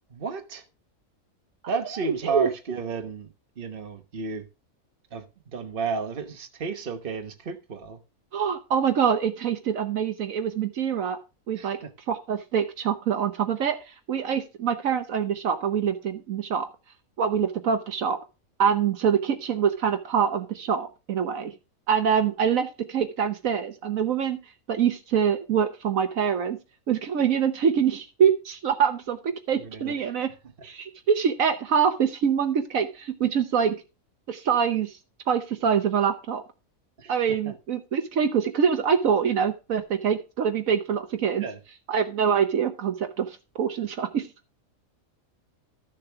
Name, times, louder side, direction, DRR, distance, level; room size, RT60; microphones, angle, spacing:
voice 1, 0.1-0.6 1.7-3.3 3.6-4.5 5.1-8.0 11.5-11.9 29.6-30.0 37.0-37.1 37.4-37.5 41.3-41.6, right 4 dB, 40° right, 1.3 m, -32 dB
voice 2, 2.1-2.5 8.3-11.2 11.5-11.8 12.1-16.7 17.2-18.2 18.6-21.5 21.9-24.4 24.7-26.6 26.9-30.3 30.6-33.7 34.3-35.0 35.3-36.4 37.1-41.4 41.9-44.3, right 7 dB, 70° right, 1.3 m, -25 dB
13.0 x 6.9 x 3.4 m
omnidirectional pair, 1.5 m